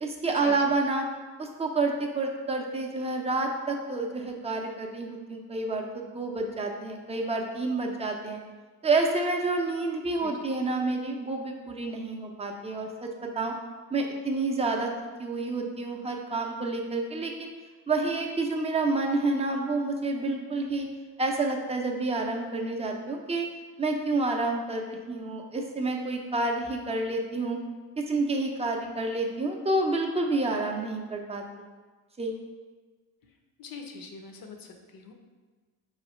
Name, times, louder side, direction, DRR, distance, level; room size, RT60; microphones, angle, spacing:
voice 1, 0.0-1.0 1.4-8.4 8.8-13.5 13.9-14.9 15.2-17.5 17.9-20.9 21.2-23.5 23.8-27.6 28.0-31.4 32.2-32.4, right 3 dB, 15° right, 1 dB, 0.5 m, -29 dB
voice 2, 33.6-35.1, left 5 dB, 50° left, 4 dB, 0.7 m, -43 dB
4.5 x 3.2 x 3.1 m, 1.4 s
cardioid pair, 85°, 45 cm